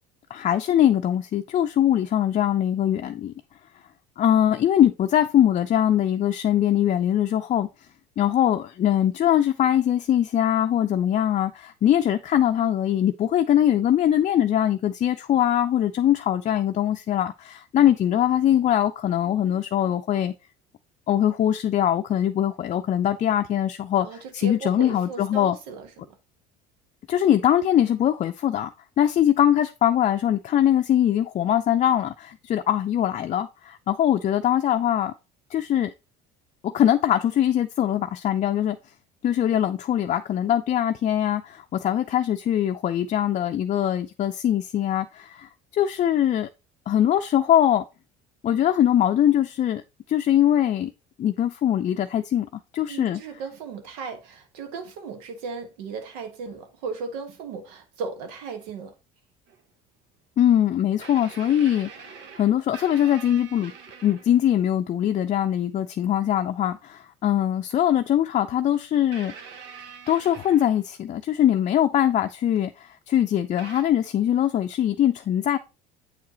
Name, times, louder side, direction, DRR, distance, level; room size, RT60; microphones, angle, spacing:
voice 1, 0.3-3.3 4.2-7.7 8.2-20.3 21.1-25.6 27.1-28.7 29.0-35.1 35.5-35.9 36.6-38.8 39.2-46.5 46.9-47.8 48.4-49.8 50.1-50.9 51.2-52.5 52.7-53.2 60.4-61.9 62.4-63.7 64.0-69.3 70.1-75.6, left 11 dB, 40° left, 0.5 m, -22 dB
voice 2, 24.0-26.2 52.9-58.9, right 4 dB, 85° right, 1.4 m, -36 dB
sound 1, 59.5-59.6 61.0-64.5 65.8-65.9 67.7-67.8 69.1-71.2 72.6-72.7 73.6-73.8, right 6 dB, 70° right, 1.3 m, -44 dB
8.2 x 4.7 x 2.9 m
supercardioid pair, 95°, 19 cm